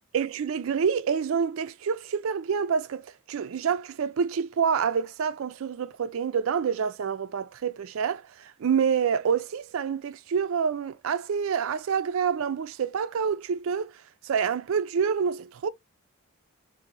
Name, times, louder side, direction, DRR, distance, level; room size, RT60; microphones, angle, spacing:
voice 1, 0.1-13.9 14.2-15.7, right 6 dB, 70° right, 0.4 m, -27 dB
2.8 x 2.6 x 4.1 m
head